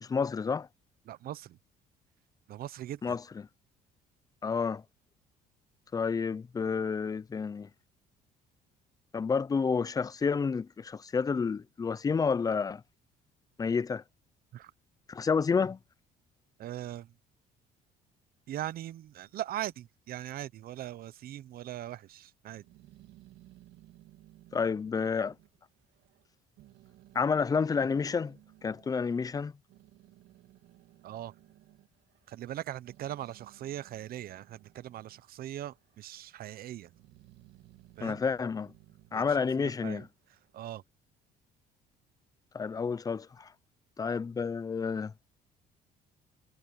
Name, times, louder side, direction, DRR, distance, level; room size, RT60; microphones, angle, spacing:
voice 1, 0.0-0.7 3.0-3.2 4.4-4.8 5.9-7.7 9.1-12.8 13.6-14.0 15.1-15.8 24.5-25.3 27.1-28.4 28.6-29.5 38.0-38.7 39.1-40.1 42.5-43.5 44.0-45.1, left 5 dB, 20° left, 0.5 m, -30 dB
voice 2, 1.0-1.6 2.5-3.2 14.5-14.7 16.6-17.1 18.5-22.7 31.0-31.3 32.3-36.9 38.0-38.2 39.1-40.8, right 12 dB, 60° right, 0.9 m, -40 dB
Growling, 22.5-26.3 26.6-28.9 29.5-35.3 35.6-36.3 36.8-40.5, right 15 dB, 85° right, 2.1 m, -59 dB
cardioid pair, 110°, 17 cm